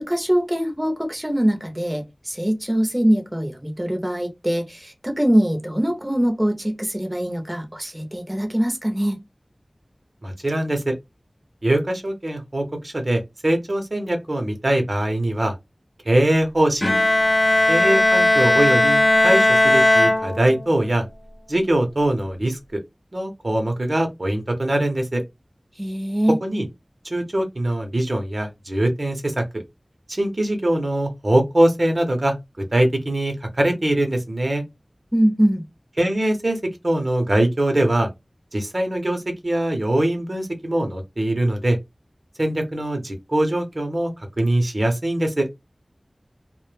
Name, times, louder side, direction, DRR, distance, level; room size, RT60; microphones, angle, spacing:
voice 1, 0.0-9.2 25.8-26.4 35.1-35.6, equal, 10° right, 0.6 m, -22 dB
voice 2, 10.2-10.9 11.6-15.5 16.1-16.9 17.7-21.1 21.5-22.8 23.1-25.2 26.4-26.7 27.0-29.4 30.1-32.3 32.7-34.6 36.0-36.6 36.8-38.1 38.5-41.8 42.4-44.1 44.4-45.5, right 1 dB, 55° right, 0.7 m, -22 dB
Bowed string instrument, 16.8-20.8, left 1 dB, 35° left, 0.4 m, -17 dB
2.1 x 2.1 x 3.1 m
wide cardioid pair, 50°, 0 cm